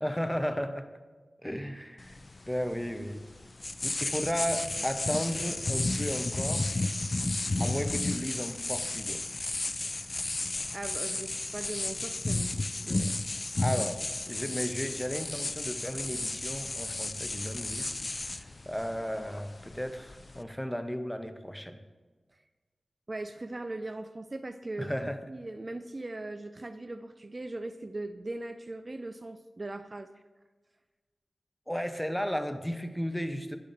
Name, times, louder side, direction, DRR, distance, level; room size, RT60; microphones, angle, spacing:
voice 1, 0.0-0.9 1.4-2.2 2.5-3.2 3.8-6.7 7.6-9.2 13.6-14.0 14.3-21.8 24.8-25.2 31.7-33.6, equal, 5° left, 8 dB, 0.6 m, -34 dB
sound 1, 2.0-20.4, left 2 dB, 40° left, 0.3 m, -33 dB
voice 2, 10.7-13.2 23.1-30.1, right 2 dB, 40° right, 9 dB, 0.3 m, -40 dB
10.5 x 6.7 x 2.6 m, 1.3 s
cardioid pair, 50°, 0 cm